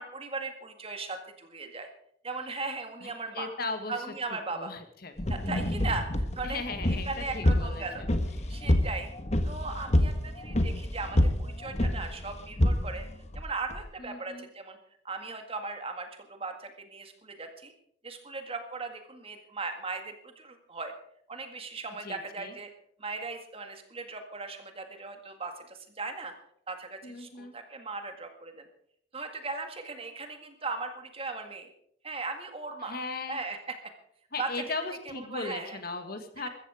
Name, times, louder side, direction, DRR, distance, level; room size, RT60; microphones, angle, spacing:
voice 1, 0.0-1.9 2.2-3.5 3.9-4.7 5.3-6.6 6.9-8.0 8.5-9.1 9.4-13.1 13.3-14.8 15.0-17.7 18.0-20.9 21.3-22.7 23.0-26.3 26.7-28.7 29.1-31.7 32.0-33.0 33.3-33.6 34.4-34.5 35.3-35.8, right 3 dB, 30° right, 6 dB, 1.9 m, -38 dB
voice 2, 3.0-3.9 4.3-5.3 6.4-8.1 8.4-8.6 14.0-14.5 22.0-22.5 27.0-27.5 32.8-33.4 34.3-36.5, left 3 dB, 55° left, 7 dB, 1.7 m, -38 dB
sound 1, 5.2-13.8, left 1 dB, 35° left, 1.5 m, -28 dB
15.0 x 14.0 x 4.9 m, 0.68 s
head